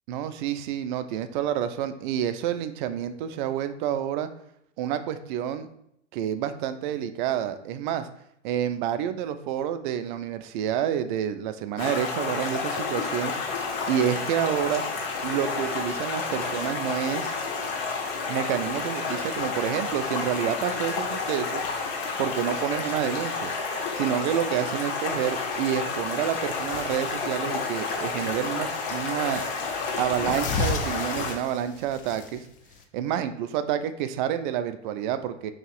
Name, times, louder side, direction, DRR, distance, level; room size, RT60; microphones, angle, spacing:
voice 1, 0.1-4.3 4.8-5.7 6.1-8.1 8.4-13.3 13.9-14.8 15.2-17.3 18.3-21.6 22.2-23.5 23.9-29.4 30.0-32.4 32.9-35.5, right 10 dB, 45° right, 11 dB, 0.4 m, -28 dB
Stream, 11.8-31.3, left 4 dB, 50° left, 1.0 m, -30 dB
sound 1, 26.6-32.8, left 4 dB, 25° left, 0.4 m, -35 dB
5.3 x 2.8 x 2.4 m, 0.75 s
hypercardioid pair, 100°, 36 cm